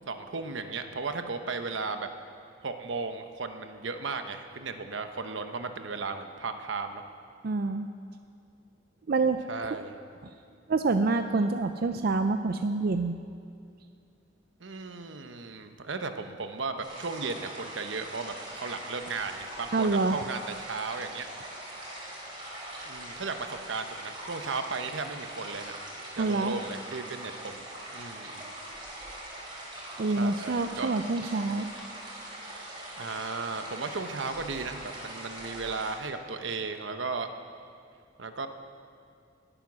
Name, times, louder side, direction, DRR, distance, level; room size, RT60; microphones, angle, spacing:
voice 1, 0.1-2.1 2.6-7.0 9.5-10.0 14.6-21.3 22.9-25.7 26.2-27.6 27.9-28.5 30.2-30.9 33.0-37.3 38.2-38.5, right 4 dB, 80° right, 7 dB, 1.0 m, -35 dB
voice 2, 7.4-7.9 9.1-9.4 10.2-10.3 10.7-13.2 19.7-20.2 26.2-26.6 30.0-31.7, right 3 dB, 55° right, 8 dB, 0.5 m, -27 dB
sound 1, 16.8-35.9, right 1 dB, 25° right, 3.7 m, -42 dB
19.5 x 8.9 x 6.2 m, 2.4 s
head